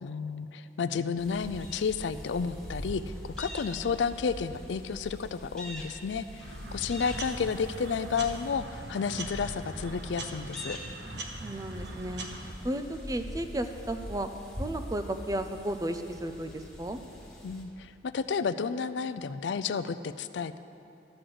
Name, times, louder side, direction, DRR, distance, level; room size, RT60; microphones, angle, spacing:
voice 1, 0.0-10.8 17.4-20.6, left 5 dB, 90° left, 13 dB, 0.4 m, -32 dB
sound 1, 1.2-17.6, equal, 5° left, 1.4 m, -43 dB
sound 2, 6.4-12.5, right 2 dB, 70° right, 1.1 m, -42 dB
voice 2, 6.7-7.0 11.4-12.3 12.6-14.3 14.6-17.0, right 1 dB, 20° right, 7 dB, 0.5 m, -34 dB
12.5 x 6.5 x 7.8 m, 2.8 s
head